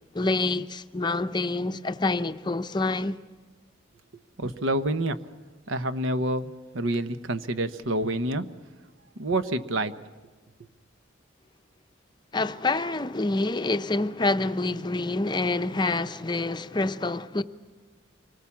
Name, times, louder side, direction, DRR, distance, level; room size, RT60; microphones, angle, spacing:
voice 1, 0.1-3.2 12.3-17.4, left 2 dB, 20° left, 0.6 m, -27 dB
voice 2, 4.4-5.2 5.7-8.4 9.2-9.9, right 1 dB, 80° right, 1.1 m, -27 dB
26.0 x 20.0 x 7.2 m
head